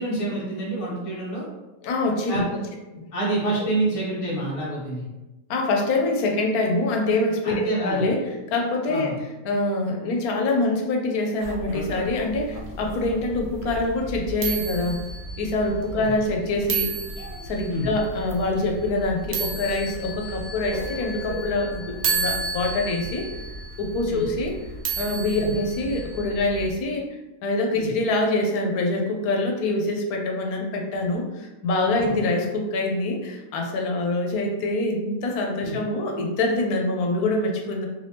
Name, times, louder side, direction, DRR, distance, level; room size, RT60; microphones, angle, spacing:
voice 1, 0.0-1.4 2.3-2.6 3.1-5.0 7.4-8.0 8.9-9.1 15.9-16.1 17.7-17.9 24.1-24.2 25.4-25.5 27.7-27.9 31.9-32.2 35.6-35.8, right 2 dB, 25° left, -5 dB, 0.9 m, -27 dB
voice 2, 1.8-2.4 2.9-3.0 3.6-3.7 5.5-15.0 15.4-16.9 17.4-23.3 23.8-24.6 25.0-27.1 27.4-37.9, left 2 dB, 85° left, 2 dB, 1.1 m, -25 dB
sound 1, 11.4-26.7, right 4 dB, 60° right, 0.7 m, -32 dB
3.3 x 3.1 x 2.7 m, 1.0 s
omnidirectional pair, 1.5 m